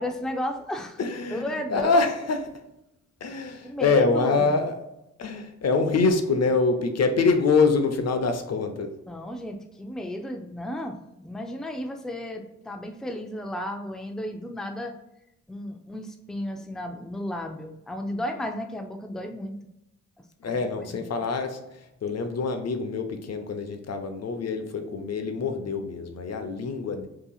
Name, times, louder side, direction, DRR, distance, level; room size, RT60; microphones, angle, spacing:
voice 1, 0.0-1.0 1.3-2.0 3.6-4.6 9.1-14.9 15.5-19.6 20.4-21.0, left 1 dB, ahead, 4 dB, 0.5 m, -33 dB
voice 2, 1.0-2.4 3.2-4.7 5.2-8.9 20.4-27.1, left 4 dB, 55° left, 6 dB, 0.7 m, -25 dB
5.4 x 2.9 x 2.4 m, 0.88 s
cardioid pair, 55°, 30 cm